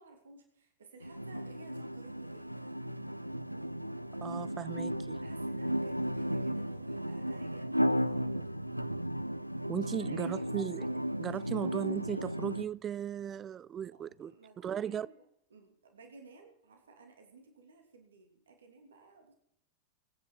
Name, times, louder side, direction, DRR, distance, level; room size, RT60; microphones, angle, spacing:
voice 1, 0.0-2.9 4.6-8.6 9.8-10.5 11.2-11.9 13.9-15.2 15.5-19.3, right 3 dB, 65° right, 2.8 m, -56 dB
sound 1, 1.0-12.6, equal, 90° right, 0.5 m, -35 dB
voice 2, 4.2-5.2 9.7-10.9 11.2-15.1, right 9 dB, 25° right, 0.4 m, -37 dB
23.5 x 9.6 x 4.6 m
figure-of-eight pair, 90°, 0 cm